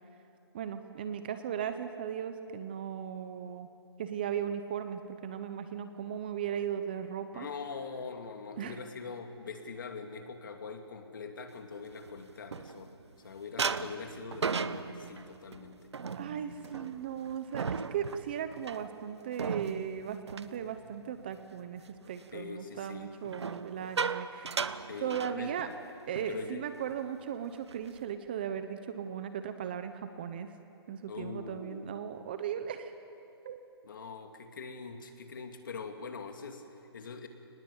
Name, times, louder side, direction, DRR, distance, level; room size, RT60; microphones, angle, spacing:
voice 1, 0.5-3.7 4.0-7.5 8.6-8.8 16.2-25.7 26.1-30.5 30.9-32.9 33.4-33.6, right 8 dB, 20° right, 9 dB, 0.8 m, -37 dB
voice 2, 7.3-15.9 22.3-23.1 24.9-25.8 26.3-26.6 31.1-31.9 33.8-37.3, left 5 dB, 50° left, 5 dB, 2.6 m, -43 dB
sound 1, 11.7-13.1 13.6-21.4 21.8-22.1 23.3-25.9 26.2-26.4 26.7-27.0 27.4-28.1, right 5 dB, 90° right, 1.1 m, -37 dB
28.5 x 20.0 x 8.7 m, 2.8 s
hypercardioid pair, 175°, 14 cm